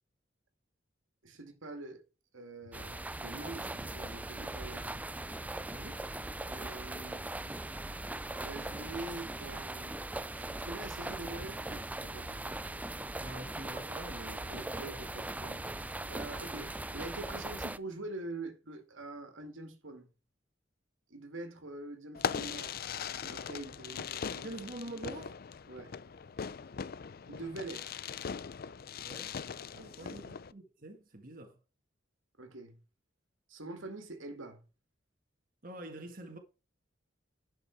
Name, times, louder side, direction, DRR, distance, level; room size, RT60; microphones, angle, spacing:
voice 1, 1.2-2.0 2.3-5.0 6.5-7.3 8.4-10.0 10.4-12.6 14.5-15.7 16.1-20.1 21.1-22.8 23.2-24.5 25.7-25.9 27.3-27.9 29.7-30.2 32.4-32.8 33.5-34.6, right 2 dB, 85° right, 2.3 m, -45 dB
sound 1, 2.7-17.8, right 2 dB, 10° right, 0.4 m, -40 dB
voice 2, 5.7-6.1 13.2-15.0 24.4-25.4 29.0-29.4 29.7-31.6 35.6-36.4, right 1 dB, 45° right, 1.8 m, -46 dB
Fireworks, 22.1-30.5, left 7 dB, 50° left, 0.5 m, -40 dB
11.0 x 6.7 x 4.6 m
head